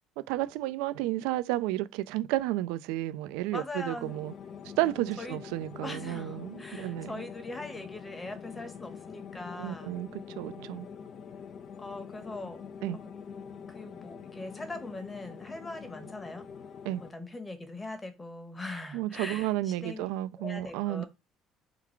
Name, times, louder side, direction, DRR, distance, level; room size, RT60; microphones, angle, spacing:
voice 1, 0.3-4.3 4.8-7.2 9.6-10.9 12.8-13.0 16.8-17.0 18.9-21.0, right 15 dB, 85° right, 0.3 m, -32 dB
voice 2, 3.5-4.2 5.2-5.4 5.8-10.0 11.8-12.6 12.9-13.1 13.7-16.5 17.0-20.1 20.4-21.1, left 2 dB, 20° left, 1.1 m, -41 dB
sound 1, 4.0-17.1, left 7 dB, 55° left, 0.5 m, -45 dB
3.7 x 2.3 x 4.4 m
supercardioid pair, 90°, 0 cm